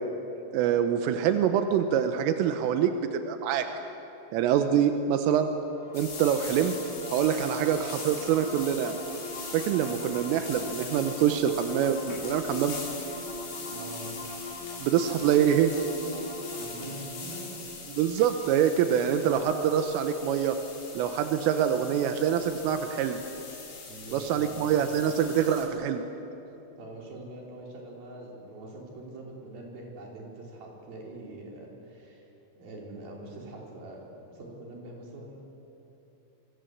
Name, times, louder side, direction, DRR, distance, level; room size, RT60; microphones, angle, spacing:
voice 1, 0.5-3.7 4.3-5.5 5.9-6.7 7.1-9.0 9.5-12.8 14.8-15.7 17.9-20.6 21.0-23.2 24.1-26.0, right 9 dB, 85° right, 6 dB, 3.6 m, -25 dB
sound 1, 5.7-19.2, equal, 15° left, 1.2 m, -41 dB
sound 2, 5.9-25.7, left 4 dB, 85° left, 7.9 m, -42 dB
voice 2, 13.7-14.1 16.5-17.6 23.9-24.7 26.8-32.3 32.6-35.4, right 2 dB, 50° right, -2 dB, 5.9 m, -44 dB
28.5 x 24.0 x 8.2 m, 3.0 s
omnidirectional pair, 5.8 m